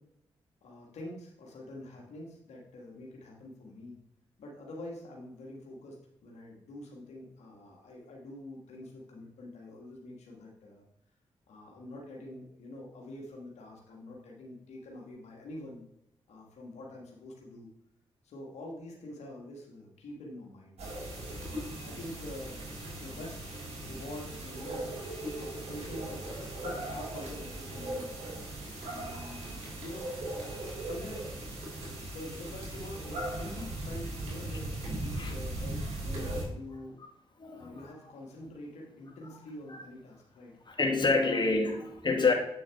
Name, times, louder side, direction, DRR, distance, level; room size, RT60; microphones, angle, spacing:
voice 1, 0.6-4.0 4.4-10.8 11.5-15.8 16.3-17.7 18.2-20.8 21.4-22.7 22.9-23.4 23.7-25.0 25.4-28.1 28.8-30.1 30.8-31.3 31.6-37.0 37.5-40.6 41.1-41.4 42.2-42.3, left 1 dB, 80° left, -1 dB, 1.7 m, -46 dB
sound 1, 20.8-36.4, right 1 dB, 70° right, 3.2 m, -38 dB
voice 2, 37.4-37.8 39.7-39.8 40.7-42.3, left 3 dB, 40° left, 2 dB, 1.8 m, -27 dB
8.1 x 6.3 x 3.5 m, 0.81 s
supercardioid pair, 45°, 11 cm